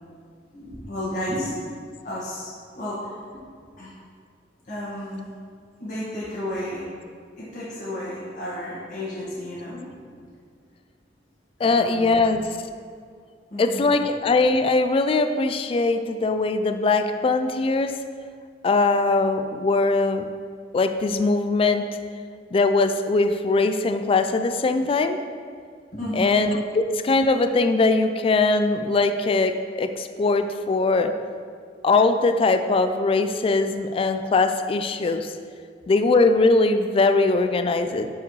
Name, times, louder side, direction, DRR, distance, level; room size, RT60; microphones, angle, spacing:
voice 1, 0.5-1.5 2.0-3.1 3.7-3.9 4.6-5.3 5.8-6.9 7.4-9.8 11.6-12.2 13.5-14.0 25.9-26.4, left 1 dB, 50° left, -9 dB, 1.7 m, -32 dB
voice 2, 11.6-12.5 13.6-17.9 18.6-20.3 20.7-21.9 22.5-25.2 26.1-31.1 31.8-35.3 35.9-38.1, left 3 dB, 30° left, 7 dB, 0.3 m, -21 dB
10.5 x 4.8 x 3.2 m, 2.1 s
head